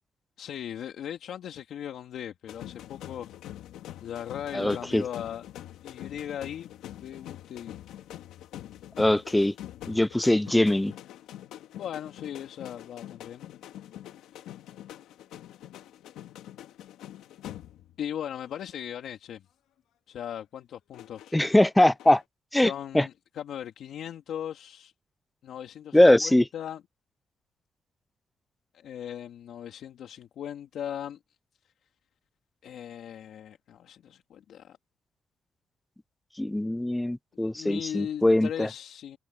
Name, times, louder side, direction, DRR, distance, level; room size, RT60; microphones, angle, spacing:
voice 1, 0.4-3.3 4.0-5.4 5.8-7.8 11.8-13.5 18.0-19.4 20.1-21.4 22.6-24.9 25.4-26.8 28.7-31.2 32.6-34.8 37.5-39.2, left 10 dB, 70° left, 2.6 m, -38 dB
sound 1, 2.5-18.1 18.4-18.7 20.9-22.2, left 12 dB, 85° left, 1.9 m, -45 dB
voice 2, 4.5-5.0 9.0-9.5 9.9-10.9 21.3-22.2 22.5-23.1 25.9-26.4 36.4-38.7, left 1 dB, 10° left, 0.4 m, -22 dB
cardioid pair, 90°, 0 cm